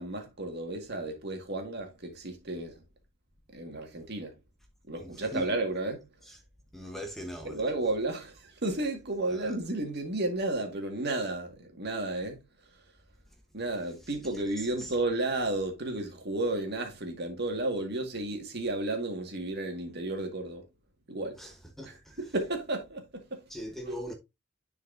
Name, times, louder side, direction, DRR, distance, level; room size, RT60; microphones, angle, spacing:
voice 1, 0.0-2.8 3.5-4.3 4.9-6.1 7.4-12.4 13.5-20.6 21.1-21.4 21.9-23.4 23.8-24.0, right 2 dB, 50° right, 1.9 m, -33 dB
voice 2, 5.0-5.5 6.2-6.4 6.7-7.6 9.3-9.5 14.0-14.1 14.6-14.9 21.4-22.2 23.5-24.1, equal, ahead, 1.1 m, -41 dB
10.5 x 4.7 x 2.7 m
head